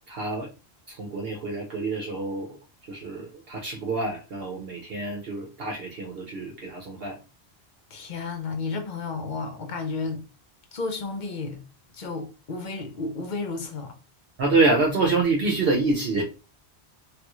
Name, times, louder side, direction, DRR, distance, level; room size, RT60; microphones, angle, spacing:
voice 1, 0.1-0.5 0.9-2.6 2.9-7.2 14.4-16.2, right 3 dB, 65° right, 0.9 m, -26 dB
voice 2, 7.9-10.2 10.7-11.6 11.9-14.0, left 3 dB, 50° left, 0.8 m, -32 dB
3.3 x 2.4 x 2.9 m
omnidirectional pair, 1.1 m